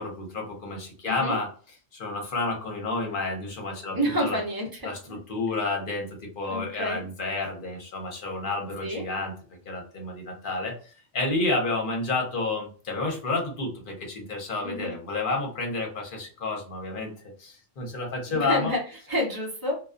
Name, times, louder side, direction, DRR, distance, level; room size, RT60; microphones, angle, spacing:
voice 1, 0.0-1.5 1.9-4.4 4.8-9.3 9.7-18.7, left 3 dB, 45° left, 0 dB, 0.9 m, -30 dB
voice 2, 1.0-1.4 3.9-5.2 6.5-7.0 8.8-9.0 14.6-14.9 18.3-19.8, equal, 25° right, -1 dB, 0.5 m, -29 dB
2.3 x 2.3 x 2.4 m, 0.40 s
omnidirectional pair, 1.3 m